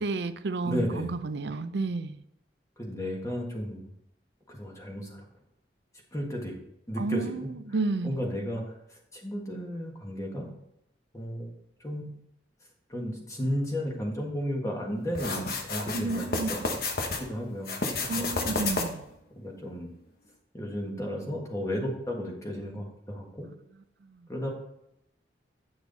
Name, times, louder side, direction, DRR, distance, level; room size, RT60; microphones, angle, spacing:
voice 1, 0.0-2.2 7.0-8.2 15.9-16.5 18.1-19.1 24.0-24.2, right 3 dB, 70° right, 12 dB, 0.5 m, -31 dB
voice 2, 0.6-1.1 2.8-3.9 4.5-5.2 6.1-6.5 6.9-7.3 8.0-8.6 8.9-10.5 11.1-11.5 11.8-12.2 12.9-16.8 17.3-17.7 18.0-18.3 19.3-19.9 20.5-23.5 24.3-24.5, equal, 20° left, 0 dB, 1.5 m, -33 dB
sound 1, 15.1-17.2 17.6-19.1, left 3 dB, 55° left, 1.1 m, -31 dB
8.9 x 6.2 x 4.0 m, 0.80 s
head